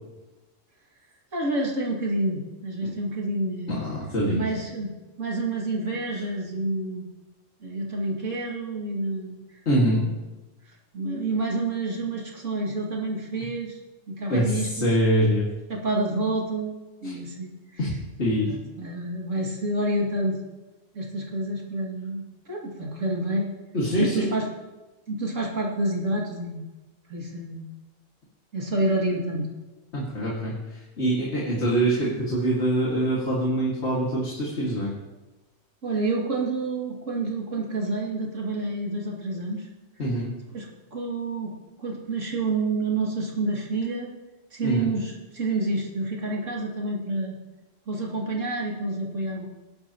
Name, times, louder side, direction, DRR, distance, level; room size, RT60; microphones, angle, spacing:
voice 1, 1.3-3.9 4.3-4.9 5.2-7.1 7.6-10.2 10.7-13.8 14.1-14.9 15.7-16.7 17.0-17.9 18.4-20.4 20.9-23.5 24.0-24.5 25.1-26.6 27.1-27.6 28.5-29.5 35.8-39.7 40.5-41.5 41.8-44.1 44.5-47.4 47.9-49.4, right 2 dB, 75° right, -2 dB, 2.8 m, -28 dB
voice 2, 3.7-4.4 9.7-10.0 14.3-15.5 17.0-17.1 17.8-17.9 18.2-18.5 23.7-24.3 29.9-30.6 31.0-34.9 40.0-40.3 44.6-44.9, right 1 dB, 55° left, -6 dB, 2.4 m, -24 dB
20.0 x 11.0 x 3.0 m, 1.1 s
omnidirectional pair, 1.3 m